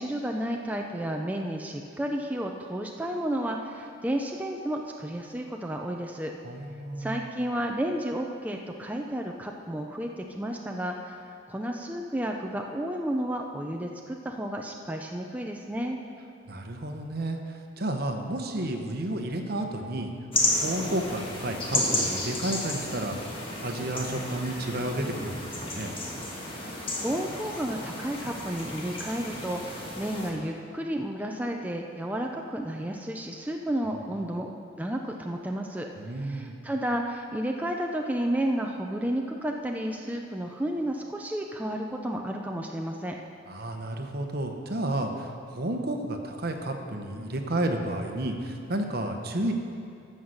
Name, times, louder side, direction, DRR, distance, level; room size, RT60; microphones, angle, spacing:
voice 1, 0.0-6.3 7.0-16.0 26.4-34.5 34.8-43.2, right 1 dB, 10° right, 1 dB, 0.5 m, -32 dB
voice 2, 6.4-7.3 16.5-20.1 20.6-23.4 23.6-26.0 35.9-36.6 43.5-49.5, right 1 dB, 55° right, 4 dB, 1.0 m, -31 dB
sound 1, 20.3-30.3, left 2 dB, 30° left, 1.6 m, -32 dB
14.0 x 5.5 x 6.5 m, 2.4 s
head